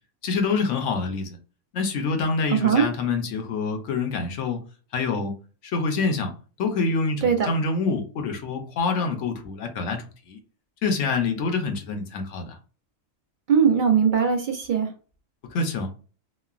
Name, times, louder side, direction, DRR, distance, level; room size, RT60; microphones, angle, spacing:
voice 1, 0.2-1.4 1.7-4.6 4.9-5.3 5.6-6.3 6.6-10.4 10.8-12.6 15.4-15.9, left 4 dB, 70° left, 0.9 m, -26 dB
voice 2, 2.5-2.9 7.2-7.5 13.5-14.9, right 7 dB, 60° right, 0.5 m, -20 dB
3.0 x 2.1 x 2.3 m
omnidirectional pair, 1.4 m